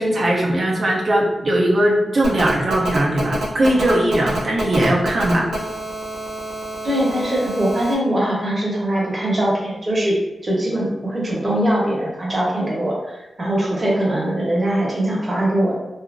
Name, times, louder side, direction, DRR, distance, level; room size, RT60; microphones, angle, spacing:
voice 1, 0.0-5.5, right 1 dB, 55° right, -2 dB, 0.6 m, -19 dB
Telephone, 2.2-7.9, right 2 dB, 90° right, 0.9 m, -28 dB
voice 2, 6.8-15.7, right 1 dB, 35° right, -4 dB, 1.0 m, -21 dB
2.8 x 2.5 x 2.5 m, 0.99 s
cardioid pair, 70°, 0 cm